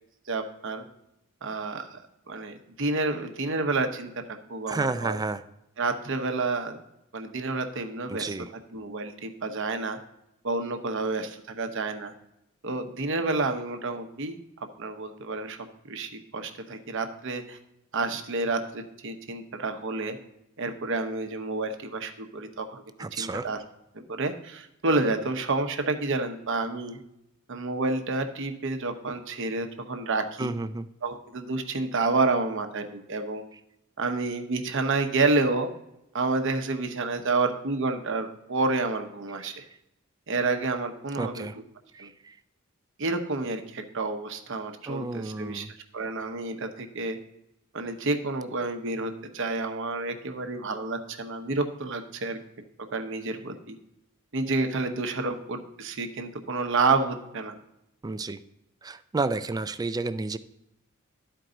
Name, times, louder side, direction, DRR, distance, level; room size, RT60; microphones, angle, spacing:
voice 1, 0.3-0.8 1.4-2.0 2.3-4.1 4.5-5.2 5.8-6.8 7.1-8.3 8.7-10.0 10.4-12.1 12.6-14.4 14.8-15.6 15.8-17.6 17.9-20.2 20.6-22.8 23.1-23.6 24.1-27.0 27.5-30.5 31.0-33.4 34.0-35.7 36.1-39.6 40.3-41.5 42.0-42.1 43.0-45.7 45.9-47.2 47.7-52.4 52.8-53.7 54.3-57.6, right 3 dB, 65° right, 7 dB, 0.9 m, -29 dB
voice 2, 4.7-5.4 8.1-8.5 23.0-23.5 30.4-30.9 39.4-39.5 41.2-41.6 41.9-42.3 44.9-45.7 58.0-58.4 58.8-60.4, right 3 dB, 20° right, 13 dB, 0.3 m, -31 dB
12.0 x 4.6 x 3.8 m, 0.84 s
head